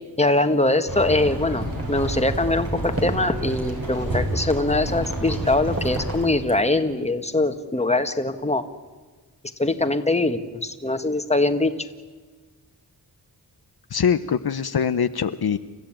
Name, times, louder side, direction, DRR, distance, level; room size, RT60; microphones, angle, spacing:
voice 1, 0.2-8.6 9.6-11.7, left 2 dB, 15° left, 7 dB, 1.7 m, -22 dB
sound 1, 0.9-6.3, right 1 dB, 60° right, 6.9 m, -29 dB
sound 2, 1.4-6.6, right 1 dB, 35° right, 3.9 m, -37 dB
voice 2, 13.9-15.6, left 7 dB, 65° left, 11 dB, 0.8 m, -23 dB
29.5 x 14.5 x 8.9 m, 1.4 s
wide cardioid pair, 70°, 40 cm